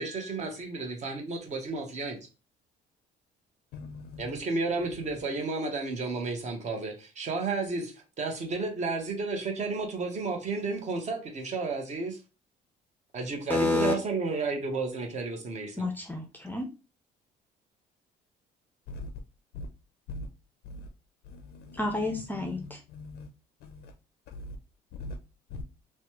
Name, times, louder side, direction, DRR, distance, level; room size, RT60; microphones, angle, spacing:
voice 1, 0.0-2.2 4.2-12.2 13.1-15.9, right 3 dB, 45° right, 0.9 m, -32 dB
voice 2, 3.7-4.2 18.9-19.1 19.6-19.7 20.1-20.3 20.7-20.8 21.7-21.8 22.4-23.3 25.0-25.1 25.5-25.6, left 2 dB, 75° left, 0.4 m, -40 dB
voice 3, 13.5-13.9 15.8-16.7 21.8-22.8, left 2 dB, 10° left, 0.5 m, -29 dB
3.1 x 2.1 x 2.9 m
cardioid pair, 110°, 17 cm